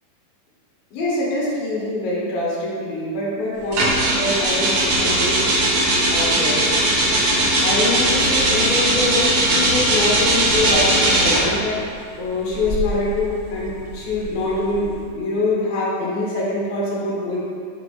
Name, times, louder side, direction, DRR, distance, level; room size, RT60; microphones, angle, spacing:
voice 1, 0.9-6.8 7.3-11.8 12.2-17.4, left 2 dB, 70° left, -6 dB, 3.0 m, -24 dB
sound 1, 3.7-11.6 12.5-15.0, right 1 dB, 90° right, 1.3 m, -19 dB
7.4 x 4.7 x 3.3 m, 2.1 s
omnidirectional pair, 4.5 m